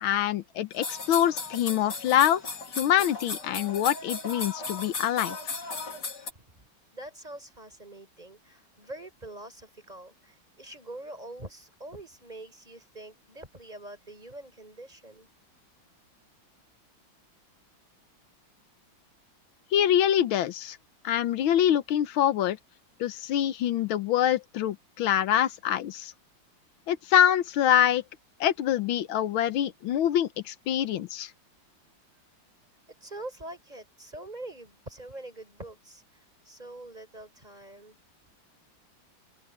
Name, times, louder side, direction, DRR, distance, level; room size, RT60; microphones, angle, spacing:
voice 1, 0.0-2.4 2.8-5.4 19.7-20.8 21.0-22.6 23.0-26.1 26.9-28.0 28.4-31.3, left 10 dB, 90° left, 1.7 m, -25 dB
sound 1, 0.7-6.3, left 4 dB, 60° left, 4.0 m, -36 dB
voice 2, 6.9-15.3 33.0-38.0, right 1 dB, 20° right, 4.8 m, -44 dB
open air
omnidirectional pair, 2.2 m